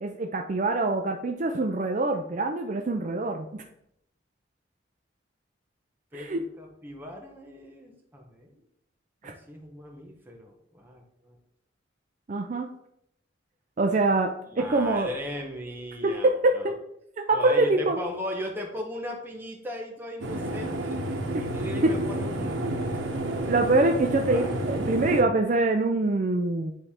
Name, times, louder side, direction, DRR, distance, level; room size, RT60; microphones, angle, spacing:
voice 1, 0.0-3.6 6.1-6.4 9.2-9.3 12.3-12.7 13.8-15.1 16.0-16.7 17.3-18.0 21.3-21.4 21.8-21.9 23.5-26.7, right 2 dB, 40° right, 4 dB, 0.4 m, -24 dB
voice 2, 6.1-8.6 9.2-11.4 14.5-16.7 17.3-21.0 21.4-22.5 22.9-23.1 23.4-23.5 24.3-24.5, left 1 dB, 10° right, 0 dB, 1.1 m, -38 dB
sound 1, 20.2-25.2, right 1 dB, 90° right, 1.0 m, -30 dB
9.3 x 3.3 x 4.3 m, 0.76 s
head